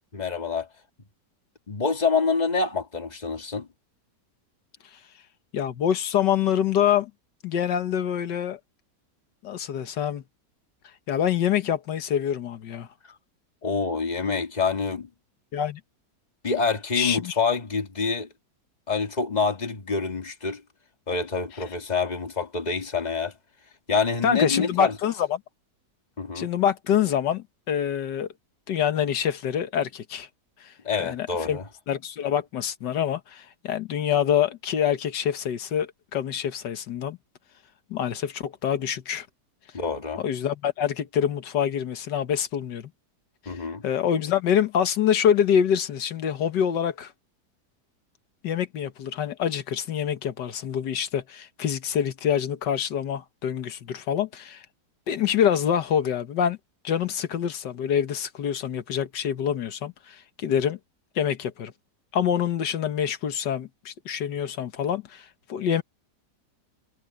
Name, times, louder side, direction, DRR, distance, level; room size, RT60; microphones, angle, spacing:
voice 1, 0.1-0.7 1.7-3.7 13.6-15.1 16.4-18.3 18.9-20.6 21.1-23.3 23.9-24.9 26.2-26.5 30.8-31.6 39.7-40.2 43.5-43.8, left 4 dB, 25° left, 2.0 m, -26 dB
voice 2, 5.5-7.1 7.4-8.6 9.4-10.2 11.1-12.9 15.5-15.8 17.0-17.4 24.2-25.4 26.4-28.3 28.7-30.3 30.6-30.7 31.0-31.6 31.9-37.2 37.9-39.3 40.2-42.9 43.5-47.1 48.4-54.6 55.1-56.6 56.8-60.8 61.2-61.7 62.1-65.8, left 9 dB, 90° left, 1.8 m, -26 dB
omnidirectional pair, 1.8 m